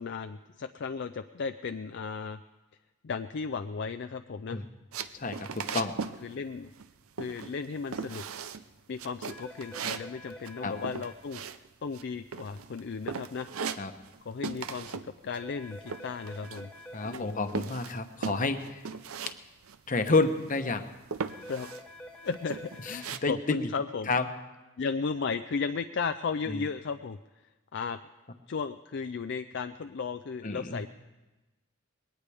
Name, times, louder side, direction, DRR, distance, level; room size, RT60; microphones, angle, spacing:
voice 1, 0.0-2.4 3.0-4.6 5.7-5.9 6.2-6.7 7.2-8.2 8.9-11.4 11.8-13.5 14.2-16.7 17.0-17.4 21.5-21.7 22.2-24.1 24.8-27.2 27.7-28.0 28.5-30.9, left 5 dB, 55° left, 9 dB, 0.4 m, -35 dB
sound 1, 4.9-6.2 6.5-6.9 7.2-7.7 7.9-8.6 9.0-12.0 12.3-12.8 13.1-14.2 14.4-15.1 15.3-16.8 17.1-19.4 19.6-19.8 20.1-20.6 21.1-21.8 22.3-23.2, right 6 dB, 85° right, 0.6 m, -38 dB
voice 2, 5.1-5.9 10.6-10.7 13.8-13.9 16.9-18.8 19.9-20.9 22.8-23.7 24.1-24.3 26.5-26.6 30.4-30.8, left 3 dB, 40° left, 8 dB, 1.0 m, -29 dB
sound 2, 9.3-11.1 15.3-17.1 21.3-23.1, left 1 dB, 5° left, 1.2 m, -47 dB
21.0 x 18.0 x 3.5 m, 1.1 s
head